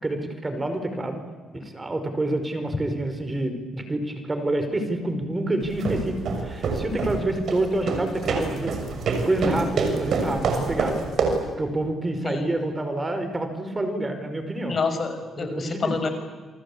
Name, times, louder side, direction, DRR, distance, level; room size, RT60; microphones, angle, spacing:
voice 1, 0.0-1.2 1.5-8.8 9.2-11.0 11.6-14.8 15.4-15.9, right 1 dB, 20° right, 8 dB, 5.0 m, -28 dB
sound 1, 5.6-11.5, right 4 dB, 60° right, 6.3 m, -26 dB
voice 2, 14.7-16.1, left 4 dB, 45° left, 7 dB, 5.9 m, -28 dB
29.0 x 24.0 x 8.6 m, 1.4 s
cardioid pair, 90°, 0 cm